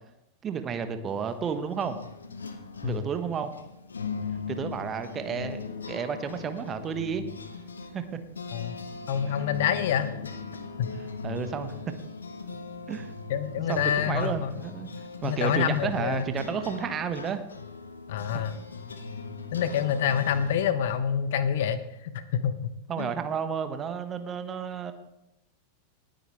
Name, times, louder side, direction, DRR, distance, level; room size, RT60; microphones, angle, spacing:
voice 1, 0.4-2.0 2.8-3.5 4.5-7.2 7.9-8.2 9.3-9.5 11.2-11.9 12.9-13.1 13.7-14.9 15.2-17.4 22.9-24.9, right 7 dB, 25° right, 9 dB, 1.2 m, -32 dB
sound 1, 1.1-20.6, left 5 dB, 75° left, 1.2 m, -39 dB
voice 2, 9.1-10.1 10.8-10.9 13.3-14.5 15.2-16.2 18.1-18.5 19.5-23.1, left 8 dB, 55° left, 13 dB, 1.0 m, -27 dB
18.5 x 9.3 x 3.5 m, 0.87 s
figure-of-eight pair, 90°, 0 cm